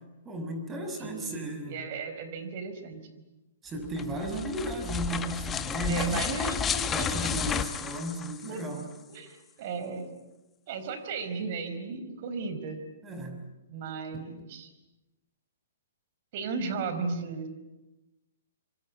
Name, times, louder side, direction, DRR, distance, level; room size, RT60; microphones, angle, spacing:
voice 1, 0.2-1.8 3.6-6.2 6.9-8.9 13.0-13.4 14.1-14.2, right 2 dB, 15° right, 6 dB, 5.7 m, -34 dB
voice 2, 1.0-3.0 5.9-7.1 8.5-8.6 9.1-10.1 10.7-12.8 13.7-14.7 16.3-17.5, right 4 dB, 50° right, 9 dB, 4.7 m, -35 dB
sound 1, 3.8-8.8, left 7 dB, 20° left, 1.4 m, -32 dB
26.0 x 24.0 x 8.6 m, 1.0 s
hypercardioid pair, 125°, 0 cm